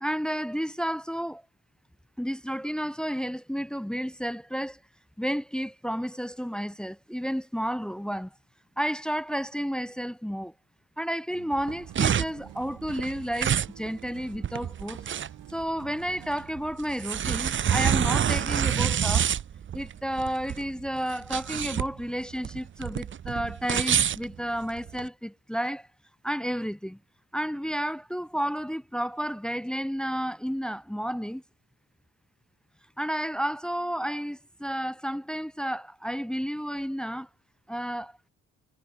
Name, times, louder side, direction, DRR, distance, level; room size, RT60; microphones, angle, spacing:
voice 1, 0.0-1.4 2.2-4.8 5.2-8.3 8.8-10.5 11.0-15.1 15.5-19.3 19.7-25.9 26.2-27.0 27.3-31.4 33.0-37.3 37.7-38.1, equal, 5° left, 0.6 m, -31 dB
sound 1, 11.3-16.6, right 15 dB, 85° right, 2.3 m, -50 dB
sound 2, 11.5-25.1, right 9 dB, 40° right, 0.7 m, -27 dB
cardioid pair, 90°, 30 cm